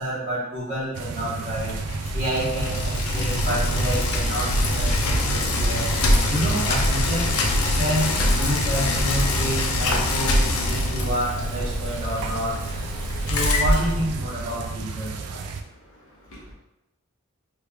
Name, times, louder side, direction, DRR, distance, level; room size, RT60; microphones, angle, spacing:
voice 1, 0.0-1.8 2.1-5.9 6.3-7.3 7.8-12.5 13.3-15.2, equal, 25° right, -11 dB, 1.0 m, -29 dB
sound 1, 0.9-15.6, right 4 dB, 85° right, 0.4 m, -32 dB
Bicycle, 1.5-14.6, left 1 dB, 80° left, 0.5 m, -24 dB
voice 2, 15.7-16.5, equal, 65° left, -7 dB, 1.1 m, -48 dB
3.5 x 3.2 x 2.2 m, 0.89 s
head